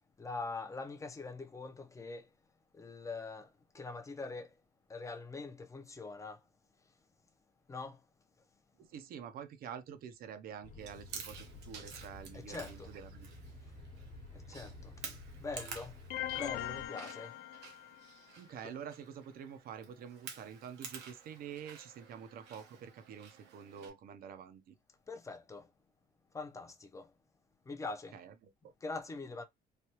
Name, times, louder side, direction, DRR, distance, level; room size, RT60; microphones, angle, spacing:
voice 1, 0.2-2.3 2.7-4.5 4.9-6.4 7.7-8.0 12.3-12.9 14.3-15.2 15.4-16.0 16.4-17.3 25.1-25.7 26.3-27.1 27.7-28.2 28.8-29.4, left 3 dB, 20° left, 0.5 m, -43 dB
voice 2, 8.8-13.3 18.4-24.8 28.1-28.7, right 8 dB, 60° right, 0.6 m, -47 dB
sound 1, 10.6-16.9, left 2 dB, 45° left, 1.0 m, -52 dB
Chewing mastication, 10.8-23.9, right 6 dB, 90° right, 0.9 m, -51 dB
sound 2, 16.1-18.2, left 13 dB, 70° left, 0.5 m, -41 dB
3.2 x 2.3 x 2.9 m
cardioid pair, 110°, 17 cm